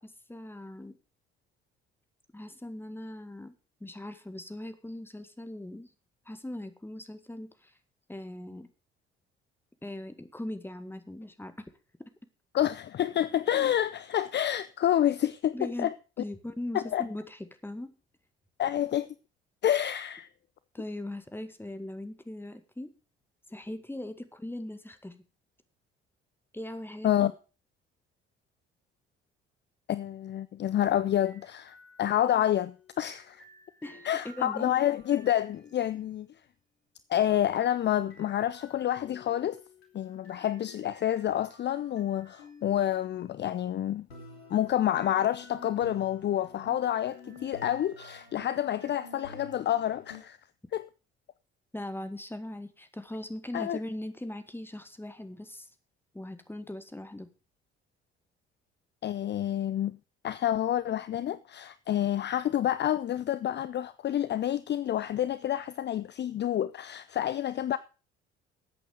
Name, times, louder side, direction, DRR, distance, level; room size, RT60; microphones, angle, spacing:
voice 1, 0.3-0.9 2.3-3.5 3.8-5.9 6.3-7.7 8.1-8.7 9.8-11.7 15.5-15.9 16.2-17.9 20.7-22.9 23.5-25.2 26.5-27.3 33.8-34.8 51.7-55.7 56.1-57.3, left 1 dB, 5° left, 1.9 m, -40 dB
voice 2, 12.5-15.9 16.7-17.1 18.6-19.1 19.6-20.3 27.0-27.3 29.9-33.4 34.0-36.3 37.1-39.6 39.9-44.1 44.5-50.4 50.7-50.9 53.5-53.8 59.0-60.0 60.2-67.8, left 11 dB, 35° left, 0.6 m, -28 dB
sound 1, 30.7-36.0 37.2-43.0 44.1-50.2, left 3 dB, 80° left, 3.0 m, -52 dB
13.5 x 8.5 x 5.0 m
figure-of-eight pair, 50°, 30 cm